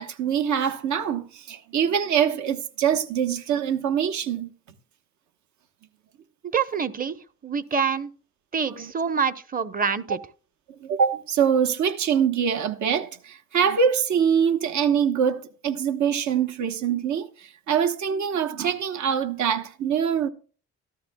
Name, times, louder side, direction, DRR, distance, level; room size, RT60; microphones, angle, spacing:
voice 1, 0.0-4.5 8.7-8.9 10.8-20.3, right 7 dB, 70° right, 1.2 m, -24 dB
voice 2, 6.5-7.1 7.4-8.1 8.5-10.2, right 6 dB, 30° right, 0.9 m, -26 dB
14.0 x 13.0 x 2.3 m
cardioid pair, 90°, 30 cm